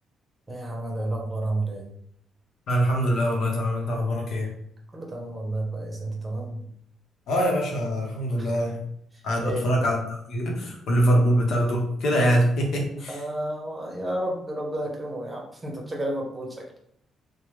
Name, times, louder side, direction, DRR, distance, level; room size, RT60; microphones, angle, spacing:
voice 1, 0.5-1.9 4.9-6.7 8.4-8.7 9.1-9.7 13.0-16.6, right 1 dB, 20° right, 0 dB, 0.9 m, -31 dB
voice 2, 2.7-4.5 7.3-8.8 9.2-10.0 10.3-13.2, equal, 70° left, 0 dB, 0.8 m, -23 dB
3.2 x 2.1 x 3.1 m, 0.70 s
cardioid pair, 90°, 0 cm